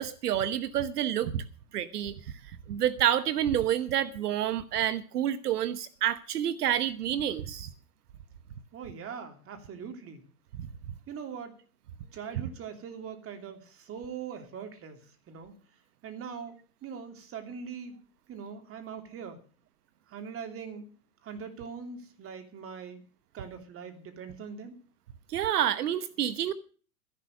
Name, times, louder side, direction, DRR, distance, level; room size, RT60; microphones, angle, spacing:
voice 1, 0.0-1.4 1.7-2.1 2.7-7.7 10.6-10.7 25.3-26.5, right 10 dB, 85° right, 1.0 m, -28 dB
voice 2, 8.7-10.2 11.1-11.5 12.1-15.5 16.0-17.9 18.3-19.4 20.1-20.9 21.2-23.0 23.3-24.7, right 6 dB, 30° right, 2.9 m, -42 dB
13.0 x 11.0 x 6.4 m
hypercardioid pair, 115°, 45 cm